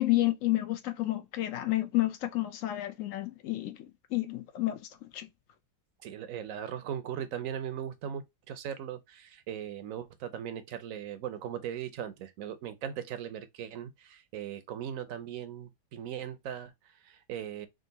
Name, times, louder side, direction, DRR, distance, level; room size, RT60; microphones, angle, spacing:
voice 1, 0.0-4.8 5.1-5.3, left 17 dB, 65° left, 0.9 m, -30 dB
voice 2, 6.0-17.7, right 9 dB, 70° right, 0.9 m, -39 dB
3.7 x 2.4 x 3.9 m
omnidirectional pair, 1.7 m